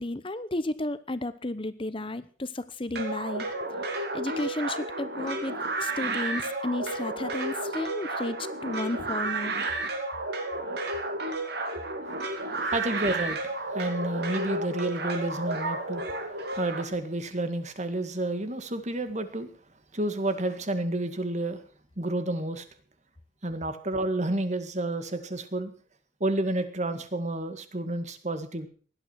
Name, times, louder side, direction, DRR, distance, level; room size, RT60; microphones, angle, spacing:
voice 1, 0.0-3.5 4.0-8.4 8.6-9.5, left 2 dB, 25° left, 14 dB, 0.9 m, -33 dB
sound 1, 3.0-16.8, right 2 dB, 55° right, 2.8 m, -32 dB
voice 2, 12.6-16.0 16.6-19.5 19.9-21.6 22.0-22.7 23.4-25.7 26.2-28.7, right 1 dB, 35° right, 10 dB, 1.9 m, -30 dB
18.0 x 12.0 x 6.2 m, 0.42 s
head